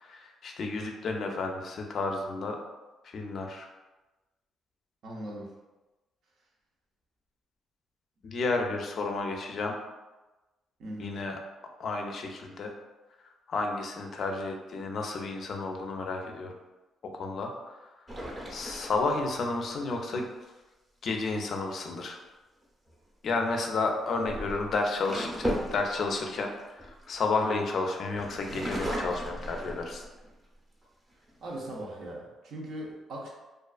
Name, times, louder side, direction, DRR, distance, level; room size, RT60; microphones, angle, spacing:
voice 1, 0.0-2.6 3.0-3.7 8.2-9.8 11.0-11.4 11.8-12.7 13.5-16.5 17.0-17.8 18.5-20.3 21.0-22.2 23.2-30.0, left 3 dB, 60° left, 3 dB, 0.4 m, -31 dB
voice 2, 5.0-5.5 10.8-11.2 31.4-33.3, right 1 dB, 70° right, -2 dB, 0.6 m, -39 dB
sound 1, 18.1-19.7 22.6-22.9 23.9-27.7 28.2-30.3 30.8-30.9 31.3-31.8, equal, 20° right, 0.6 m, -36 dB
2.4 x 2.4 x 2.3 m, 1.1 s
cardioid pair, 90°, 0 cm